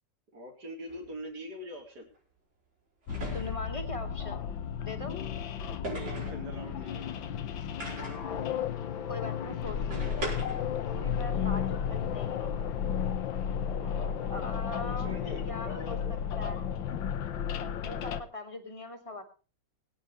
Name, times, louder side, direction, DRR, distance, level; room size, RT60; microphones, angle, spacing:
voice 1, 0.3-2.1 5.9-7.1 11.2-11.7 13.5-16.2, equal, 60° right, 1 dB, 4.2 m, -44 dB
sound 1, 0.9-1.0 3.1-3.8 5.8-6.4 7.8-8.3 9.9-10.7, right 2 dB, 85° right, 5.8 m, -39 dB
sound 2, 3.1-18.2, left 8 dB, 85° left, 1.7 m, -33 dB
voice 2, 3.3-4.5 4.8-5.2 9.1-10.2 10.9-12.6 14.3-16.6 17.8-19.2, left 2 dB, 15° left, 5 dB, 2.3 m, -41 dB
22.0 x 9.5 x 3.2 m, 0.35 s
omnidirectional pair, 2.0 m